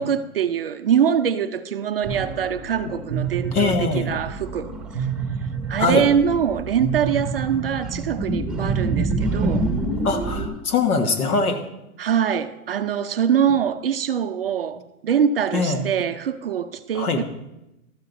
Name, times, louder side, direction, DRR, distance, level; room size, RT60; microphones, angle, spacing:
voice 1, 0.0-4.7 5.0-5.1 5.7-9.7 12.0-17.2, right 8 dB, 45° right, 0.4 m, -23 dB
sound 1, 2.0-10.5, right 3 dB, ahead, 1.3 m, -27 dB
voice 2, 3.5-4.2 5.8-6.1 10.0-11.7 15.5-15.9 16.9-17.2, left 4 dB, 80° left, 1.6 m, -22 dB
13.0 x 7.5 x 4.0 m
hypercardioid pair, 155°, 44 cm